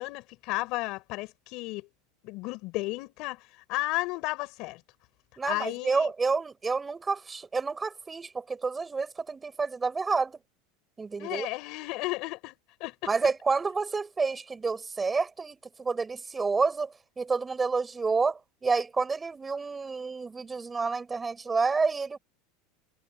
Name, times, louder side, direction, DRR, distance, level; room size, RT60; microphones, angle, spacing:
voice 1, 0.0-1.9 2.2-4.8 5.4-6.1 11.2-13.1, left 22 dB, 55° left, 4.5 m, -33 dB
voice 2, 5.4-10.4 11.0-11.5 13.1-22.2, right 4 dB, 15° right, 5.8 m, -29 dB
supercardioid pair, 140°, 0 cm